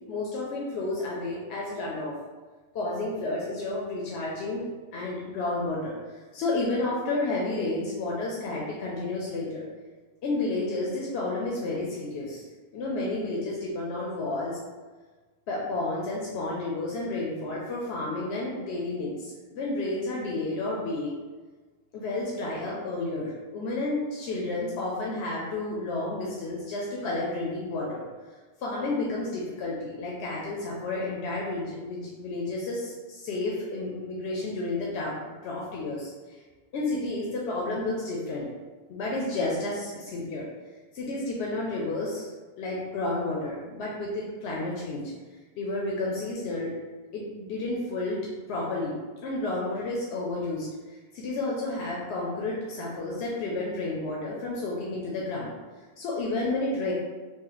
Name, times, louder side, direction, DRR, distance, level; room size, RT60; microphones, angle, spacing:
voice 1, 0.1-2.2 2.7-4.6 4.9-9.6 10.2-12.5 12.7-14.6 15.5-21.1 21.9-28.0 28.6-36.4 36.7-38.5 38.9-40.5 40.9-45.1 45.6-46.7 47.1-48.2 48.5-55.5 56.0-56.9, left 2 dB, 90° left, -3 dB, 0.9 m, -31 dB
3.1 x 2.4 x 3.8 m, 1.3 s
omnidirectional pair, 1.1 m